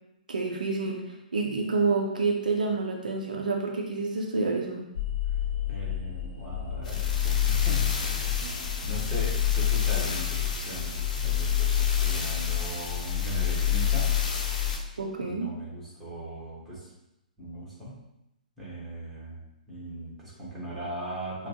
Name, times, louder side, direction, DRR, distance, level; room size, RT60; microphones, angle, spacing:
voice 1, 0.3-1.0 1.3-4.9 8.4-8.5 15.0-15.5, right 3 dB, 65° right, 1 dB, 0.6 m, -28 dB
sound 1, 4.9-14.8, left 9 dB, 55° left, 0.6 m, -27 dB
voice 2, 5.7-8.2 8.8-14.1 15.2-16.9 17.4-18.0 18.6-21.5, right 1 dB, ahead, -9 dB, 1.5 m, -39 dB
6.0 x 2.1 x 2.9 m, 0.89 s
figure-of-eight pair, 120°, 5 cm